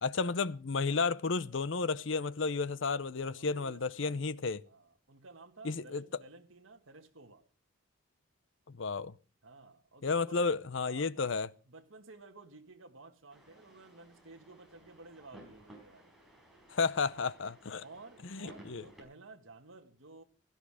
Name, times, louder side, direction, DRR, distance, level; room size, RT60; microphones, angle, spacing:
voice 1, 0.0-4.6 5.6-6.0 8.7-9.1 10.0-11.5 16.7-17.8 18.3-18.8, left 4 dB, 60° left, 0.7 m, -32 dB
voice 2, 0.8-1.1 3.3-4.4 4.7-7.4 9.4-10.6 10.8-11.2 11.7-16.1 17.8-20.2, right 3 dB, 70° right, 1.8 m, -54 dB
sound 1, 13.3-19.0, right 1 dB, ahead, 5.0 m, -57 dB
16.5 x 13.5 x 4.9 m
head